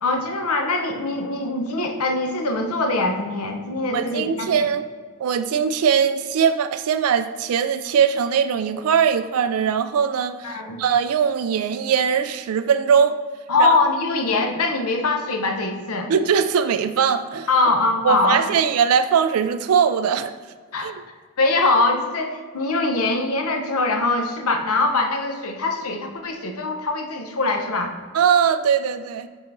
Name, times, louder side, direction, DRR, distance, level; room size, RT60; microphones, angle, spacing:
voice 1, 0.0-4.7 10.4-10.8 13.5-16.1 17.5-18.4 20.7-20.9 21.4-27.9, left 3 dB, 85° left, 4 dB, 0.8 m, -22 dB
voice 2, 3.9-4.9 5.2-13.2 13.6-13.8 16.1-17.5 18.0-20.3 20.8-20.9 28.1-29.3, right 7 dB, 75° right, 10 dB, 0.3 m, -20 dB
5.5 x 3.8 x 5.9 m, 1.5 s
head